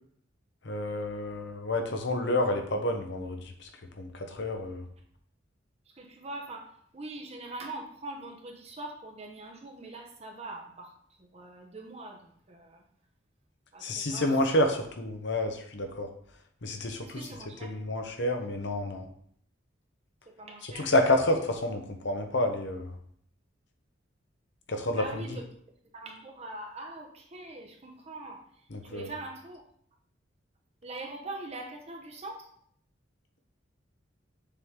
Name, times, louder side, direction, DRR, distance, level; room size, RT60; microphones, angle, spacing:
voice 1, 0.6-3.7 4.0-4.9 13.8-16.1 16.6-17.3 17.6-19.1 20.6-22.9 24.7-25.4 28.7-29.1, left 1 dB, 65° left, 5 dB, 1.0 m, -29 dB
voice 2, 5.9-10.9 11.2-12.8 13.7-14.3 14.7-14.8 17.0-17.7 20.4-20.9 24.9-25.4 25.9-28.4 28.8-29.6 30.8-32.5, right 2 dB, 35° right, 2 dB, 0.8 m, -42 dB
6.8 x 4.7 x 3.7 m, 0.64 s
head